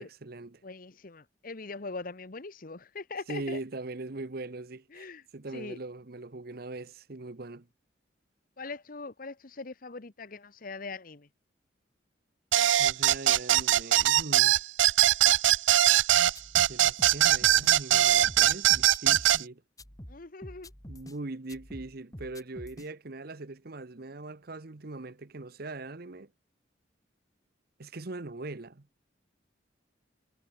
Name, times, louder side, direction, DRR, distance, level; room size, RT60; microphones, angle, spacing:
voice 1, 0.0-0.6 3.3-7.7 12.8-14.6 16.6-19.6 20.9-26.3 27.8-28.9, right 2 dB, 55° right, 1.0 m, -41 dB
voice 2, 0.6-3.6 4.9-5.2 5.5-5.8 8.6-11.3 20.1-20.7, left 3 dB, 50° left, 1.1 m, -41 dB
sound 1, 12.5-19.4, right 13 dB, 90° right, 0.5 m, -22 dB
sound 2, 16.4-17.7 18.1-19.5 19.8-21.2 21.5-22.9, left 1 dB, 20° left, 3.9 m, -46 dB
head